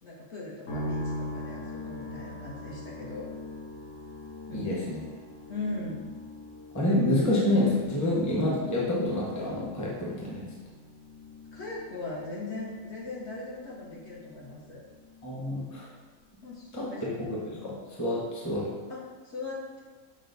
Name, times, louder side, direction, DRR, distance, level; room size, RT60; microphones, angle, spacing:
voice 1, 0.0-3.3 4.5-4.7 5.5-6.1 11.5-14.8 16.4-17.3 18.9-19.8, left 2 dB, 60° left, -4 dB, 1.0 m, -39 dB
sound 1, 0.7-15.9 16.2-17.0, left 2 dB, 75° left, 1.5 m, -42 dB
voice 2, 4.5-5.0 6.7-10.4 15.2-15.9 16.7-16.9 17.3-18.7, left 1 dB, 15° left, -5 dB, 0.8 m, -28 dB
6.3 x 2.1 x 3.9 m, 1.3 s
omnidirectional pair, 1.4 m